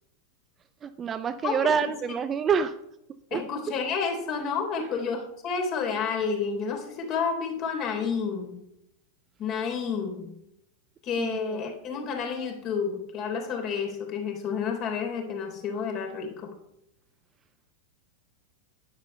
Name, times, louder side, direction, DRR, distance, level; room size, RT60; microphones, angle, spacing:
voice 1, 0.8-2.7 3.3-3.4 4.8-4.9 11.2-11.6, right 7 dB, 25° right, 12 dB, 0.6 m, -27 dB
voice 2, 1.4-1.9 3.3-8.6 9.4-10.4 11.0-16.5, left 5 dB, 35° left, 3 dB, 3.7 m, -30 dB
10.5 x 10.5 x 5.6 m, 0.81 s
figure-of-eight pair, 90°, 0 cm